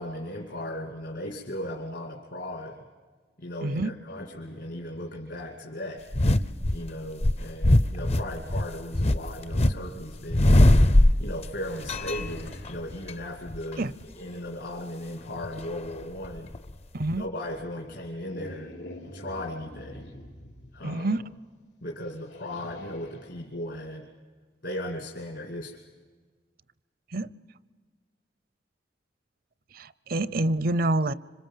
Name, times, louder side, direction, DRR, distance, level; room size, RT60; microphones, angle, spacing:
voice 1, 0.0-2.8 3.4-6.1 6.7-10.5 11.2-13.9 14.2-16.5 17.1-18.7 19.0-20.1 20.7-21.2 21.8-24.1 24.6-25.8, left 1 dB, 65° left, 1 dB, 2.5 m, -37 dB
voice 2, 3.6-3.9 13.8-13.9 16.9-17.2 20.8-21.2 27.1-27.3 29.7-31.1, right 2 dB, 55° right, 18 dB, 0.7 m, -27 dB
sound 1, 4.1-5.7 8.6-8.7 9.6-9.8 10.4-12.8 16.6-16.7 17.5-20.9 22.1-23.4, left 1 dB, 90° left, 4.2 m, -46 dB
sound 2, 6.1-6.8 7.2-9.7 10.0-11.5 11.8-13.1 13.5-13.7 15.4-16.7 17.1-17.2, left 1 dB, 35° left, 0.7 m, -21 dB
26.0 x 25.5 x 7.4 m, 1.5 s
head